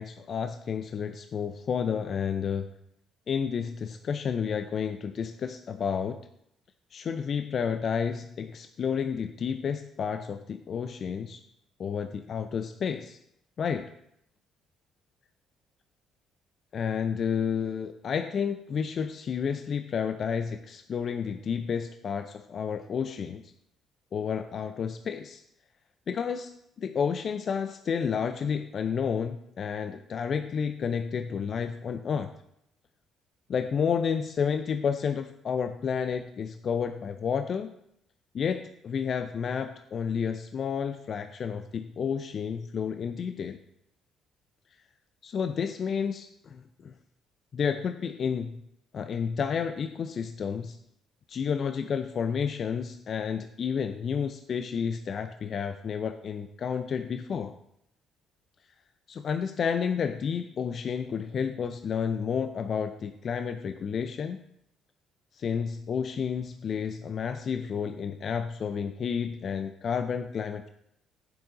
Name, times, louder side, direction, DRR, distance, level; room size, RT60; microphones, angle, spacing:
voice 1, 0.0-2.7 3.3-6.2 6.9-11.4 11.8-13.2 13.6-13.9 16.7-23.5 24.1-25.4 26.1-26.5 26.8-32.3 33.5-37.7 38.3-43.6 45.2-46.9 47.5-48.6 48.9-50.8 51.3-57.5 59.1-64.4 65.3-70.7, left 7 dB, 50° left, 9 dB, 0.5 m, -31 dB
8.9 x 7.5 x 3.9 m, 0.75 s
figure-of-eight pair, 50°, 0 cm